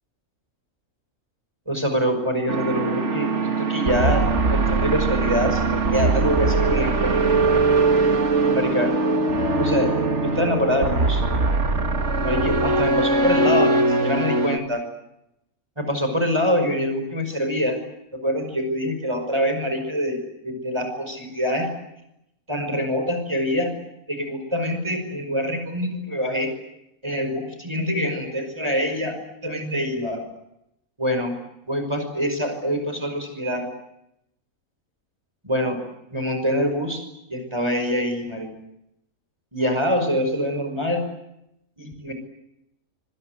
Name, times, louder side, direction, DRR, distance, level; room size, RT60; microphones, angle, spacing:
voice 1, 1.7-7.4 8.5-8.9 9.6-9.9 10.2-11.2 12.2-14.8 15.8-17.8 18.2-21.7 22.5-23.7 24.1-26.5 27.0-30.3 31.0-31.3 31.7-33.7 35.4-35.8 36.1-37.0 37.3-38.5 39.5-41.0 41.8-42.1, equal, 20° right, 6 dB, 5.5 m, -25 dB
sound 1, 2.5-14.6, right 3 dB, 50° right, 2.1 m, -21 dB
26.0 x 26.0 x 8.0 m, 0.82 s
omnidirectional pair, 1.5 m